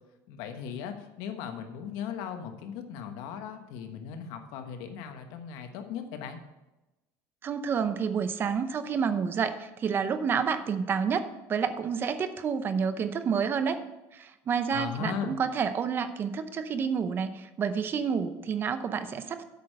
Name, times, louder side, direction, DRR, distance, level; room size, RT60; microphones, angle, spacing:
voice 1, 0.3-6.4 14.7-15.4, left 7 dB, 75° left, 7 dB, 1.2 m, -37 dB
voice 2, 7.4-13.8 14.1-19.4, right 6 dB, 35° right, 11 dB, 0.7 m, -29 dB
8.3 x 6.5 x 6.4 m, 1.0 s
cardioid pair, 140°, 7 cm